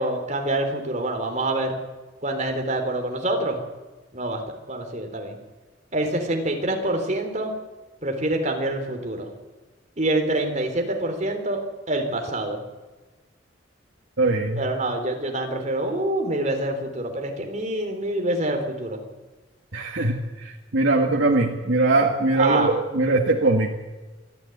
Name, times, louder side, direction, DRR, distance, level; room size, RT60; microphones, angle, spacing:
voice 1, 0.0-1.8 2.2-3.6 4.1-4.4 4.7-5.4 5.9-7.5 8.0-9.3 10.0-11.6 11.9-12.6 14.6-19.0 22.4-22.7, right 1 dB, 40° right, 4 dB, 3.6 m, -26 dB
voice 2, 14.2-14.6 19.7-23.8, right 2 dB, 75° right, 0 dB, 1.9 m, -21 dB
27.0 x 11.5 x 9.4 m, 1.2 s
head